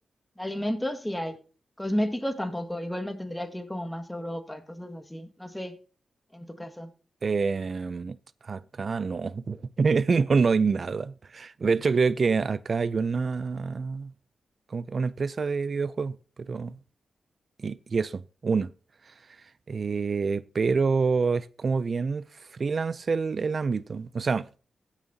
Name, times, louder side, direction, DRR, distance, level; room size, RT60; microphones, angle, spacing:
voice 1, 0.4-1.4 1.8-5.7 6.3-6.9, equal, 10° left, 1.7 m, -32 dB
voice 2, 7.2-8.2 8.4-14.1 14.7-16.8 17.6-18.7 19.7-22.2 22.5-24.5, right 5 dB, 55° right, 0.4 m, -27 dB
15.5 x 7.2 x 2.7 m
supercardioid pair, 45°, 0 cm